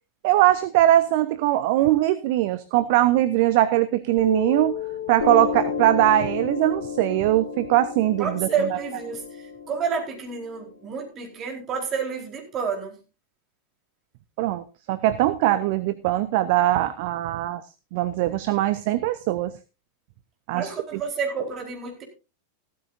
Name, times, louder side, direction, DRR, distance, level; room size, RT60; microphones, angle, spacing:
voice 1, 0.2-4.8 5.1-8.5 14.4-17.6 17.9-19.5 20.5-20.7, right 14 dB, 50° right, 14 dB, 0.7 m, -21 dB
Piano, 4.2-11.2, left 7 dB, 60° left, 1.9 m, -32 dB
voice 2, 8.2-13.0 20.5-22.0, right 6 dB, 30° right, 1 dB, 4.3 m, -29 dB
15.0 x 13.5 x 2.7 m, 0.30 s
figure-of-eight pair, 90°, 0 cm